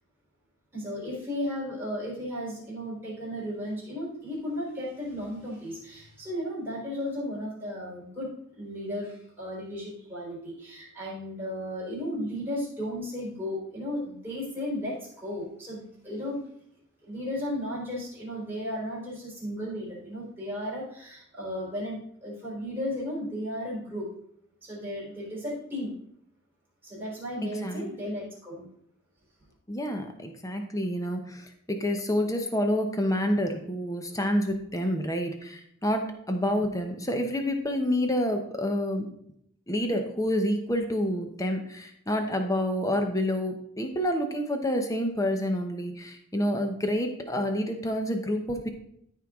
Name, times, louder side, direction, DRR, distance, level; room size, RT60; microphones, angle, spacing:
voice 1, 0.7-16.4 17.0-24.1 24.6-25.9 26.8-28.6, equal, 10° right, -7 dB, 3.7 m, -35 dB
voice 2, 27.4-27.9 29.7-39.1 39.7-48.7, equal, 15° left, 5 dB, 0.8 m, -28 dB
13.0 x 4.6 x 3.7 m, 0.72 s
head